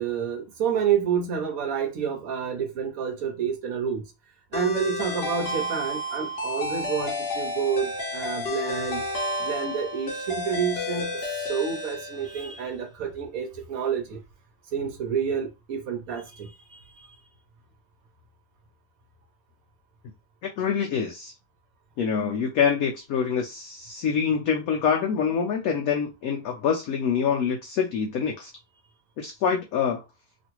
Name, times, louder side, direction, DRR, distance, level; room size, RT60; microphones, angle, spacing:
voice 1, 0.0-4.0 4.5-9.0 9.4-14.2 14.7-17.1, right 7 dB, 60° right, 0.9 m, -29 dB
sound 1, 4.5-12.7, left 1 dB, 55° left, 0.7 m, -31 dB
voice 2, 20.6-21.3 22.0-28.5 29.2-30.0, left 7 dB, 90° left, 0.7 m, -25 dB
3.0 x 2.5 x 2.9 m
omnidirectional pair, 2.1 m